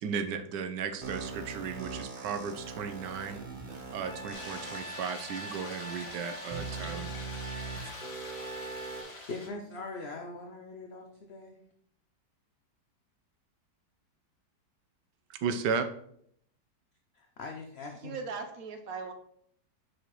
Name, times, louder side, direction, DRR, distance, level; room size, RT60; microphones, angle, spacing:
voice 1, 0.0-3.4 3.9-7.1 15.4-15.9, right 6 dB, 85° right, 9 dB, 1.3 m, -35 dB
sound 1, 1.0-4.8 5.5-5.6 6.5-9.0, right 4 dB, 35° right, 0.8 m, -41 dB
Trumpet, 4.0-9.1, equal, 5° left, 1.2 m, -46 dB
sound 2, 4.3-9.5, left 2 dB, 75° left, 2.0 m, -45 dB
voice 2, 9.3-11.6 17.1-18.1, left 3 dB, 55° left, 3 dB, 0.7 m, -41 dB
voice 3, 18.0-19.1, right 5 dB, 60° right, 6 dB, 1.1 m, -38 dB
6.5 x 6.4 x 3.0 m, 0.68 s
omnidirectional pair, 1.8 m